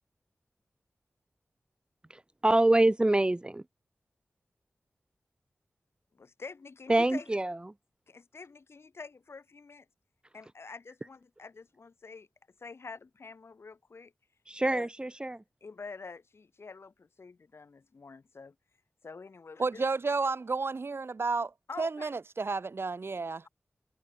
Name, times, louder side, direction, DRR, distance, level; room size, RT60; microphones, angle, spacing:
voice 1, 2.1-3.6 6.9-7.6 14.5-15.4, right 1 dB, 20° right, 1.1 m, -25 dB
voice 2, 6.1-7.3 8.1-9.8 10.3-12.3 12.6-14.1 14.5-14.9 15.6-18.5 19.0-19.8 21.7-22.1, left 4 dB, 70° left, 4.7 m, -47 dB
voice 3, 19.6-23.5, right 4 dB, 60° right, 4.4 m, -32 dB
wide cardioid pair, 70°, 4 cm